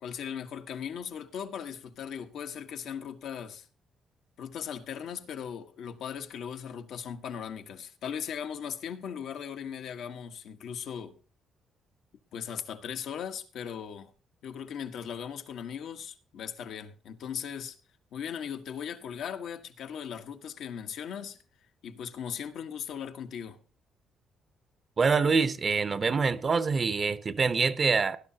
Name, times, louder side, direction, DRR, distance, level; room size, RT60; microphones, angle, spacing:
voice 1, 0.0-3.7 4.4-11.2 12.3-14.1 14.4-17.8 18.1-21.4 21.8-23.6, left 8 dB, 75° left, 1.3 m, -38 dB
voice 2, 25.0-28.2, right 5 dB, 40° right, 0.8 m, -25 dB
18.5 x 11.0 x 2.8 m
cardioid pair, 90°, 0 cm